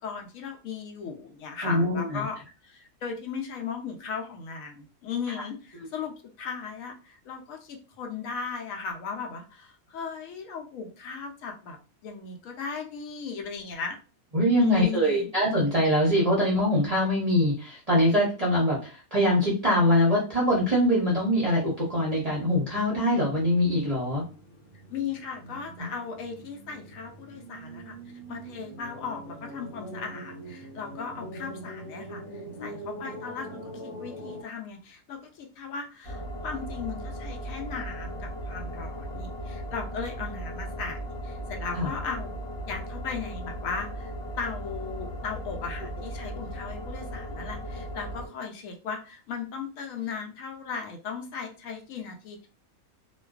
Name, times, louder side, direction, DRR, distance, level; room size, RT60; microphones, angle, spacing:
voice 1, 0.0-2.4 2.6-11.8 12.0-14.0 14.6-15.3 24.9-28.0 28.3-42.4 42.7-52.5, left 5 dB, 75° left, 3 dB, 0.9 m, -37 dB
voice 2, 1.6-2.2 14.3-24.2 41.8-41.9, equal, 45° right, -5 dB, 0.5 m, -23 dB
sound 1, 20.4-34.4, right 1 dB, 90° left, 1.2 m, -44 dB
sound 2, 36.0-48.3, equal, 45° left, 1.1 m, -37 dB
2.4 x 2.2 x 2.3 m, 0.34 s
omnidirectional pair, 1.5 m